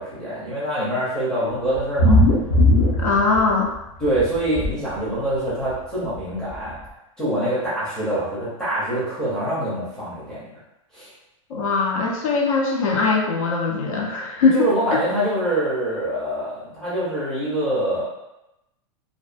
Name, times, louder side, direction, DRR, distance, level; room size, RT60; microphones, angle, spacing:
voice 1, 0.0-2.2 3.0-3.1 4.0-6.7 7.2-10.4 10.9-11.1 14.4-18.0, right 1 dB, 5° left, -11 dB, 0.5 m, -25 dB
sound 1, 1.7-3.7 4.0-4.7 5.7-5.8 6.2-6.3 6.5-6.6, left 1 dB, 40° left, 0.7 m, -17 dB
voice 2, 3.0-3.7 11.5-15.0, left 4 dB, 85° left, 0 dB, 0.6 m, -21 dB
2.3 x 2.1 x 2.4 m, 0.89 s
supercardioid pair, 180°, 17 cm